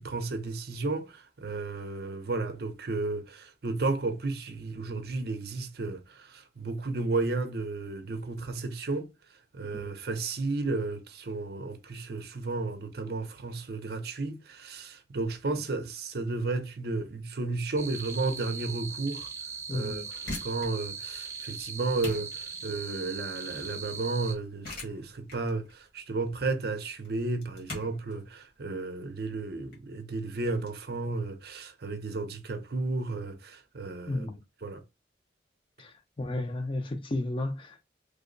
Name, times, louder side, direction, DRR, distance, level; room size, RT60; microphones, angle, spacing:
voice 1, 0.0-9.1 9.5-19.3 19.7-34.3 34.6-34.8, right 3 dB, 60° right, 0.6 m, -33 dB
sound 1, 17.8-24.3, right 5 dB, 15° right, 0.6 m, -40 dB
voice 2, 19.7-20.1 34.1-34.4 35.8-37.8, left 2 dB, 30° left, 0.5 m, -33 dB
sound 2, 20.1-30.7, left 2 dB, 55° left, 1.5 m, -45 dB
3.3 x 2.0 x 3.8 m
head